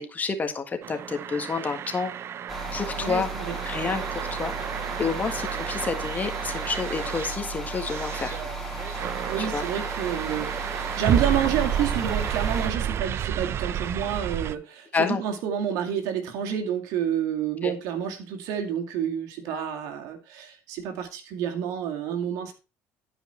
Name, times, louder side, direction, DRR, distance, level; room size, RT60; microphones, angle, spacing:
voice 1, 0.0-2.1 2.7-3.3 3.6-4.5 5.0-8.4 9.4-9.6 14.9-15.2 17.6-17.7 19.5-19.6, left 5 dB, 30° left, 7 dB, 1.7 m, -29 dB
sound 1, 0.8-14.5, right 9 dB, 50° right, 0.5 m, -31 dB
sound 2, 2.5-12.7, right 2 dB, ahead, 2.7 m, -35 dB
voice 2, 3.0-3.6 9.3-22.5, right 9 dB, 75° right, 5 dB, 2.2 m, -29 dB
12.0 x 5.2 x 4.4 m, 0.32 s
supercardioid pair, 100°, 6 cm